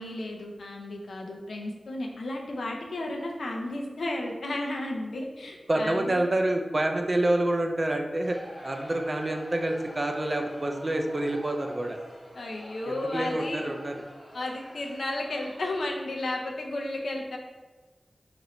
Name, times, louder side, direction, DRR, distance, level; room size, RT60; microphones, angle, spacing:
voice 1, 0.0-6.3 12.4-13.7 14.3-17.4, left 1 dB, 80° left, 0 dB, 0.4 m, -33 dB
voice 2, 5.7-12.0 12.9-13.9, right 1 dB, 35° right, 3 dB, 0.3 m, -27 dB
Crowd, 8.2-15.9, equal, 25° left, 0.9 m, -47 dB
3.0 x 2.5 x 2.9 m, 1.3 s
wide cardioid pair, 90°, 0 cm